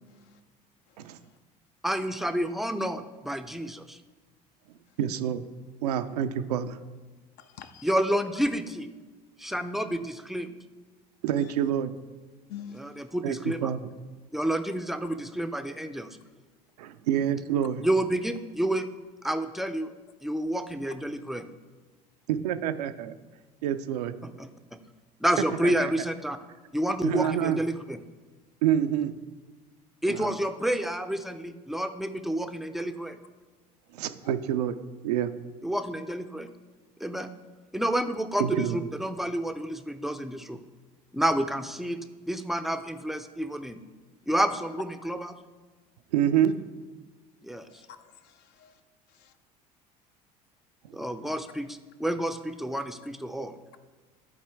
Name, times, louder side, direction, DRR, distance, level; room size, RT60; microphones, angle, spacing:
voice 1, 1.8-4.0 7.8-8.9 9.4-10.6 12.7-13.7 14.3-16.1 17.8-18.8 19.2-19.9 20.2-21.5 24.2-24.8 25.2-26.4 26.7-28.0 30.0-33.2 35.6-36.5 37.0-37.3 37.7-40.6 41.1-42.0 42.3-43.8 44.3-45.4 47.4-47.7 50.9-53.6, right 1 dB, ahead, 9 dB, 0.5 m, -29 dB
voice 2, 5.0-5.4 5.8-6.8 11.2-11.9 13.2-13.9 16.8-17.8 22.3-23.2 23.6-24.1 25.8-25.9 27.0-27.6 28.6-29.1 30.1-30.3 33.9-34.8 35.0-35.3 38.4-38.8 46.1-46.5, right 10 dB, 75° right, 10 dB, 0.5 m, -27 dB
voice 3, 7.4-7.9 12.5-13.0 47.7-48.8 49.2-49.3 51.2-51.3, left 8 dB, 55° left, 9 dB, 0.6 m, -46 dB
12.0 x 4.3 x 3.5 m, 1.3 s
figure-of-eight pair, 65°, 21 cm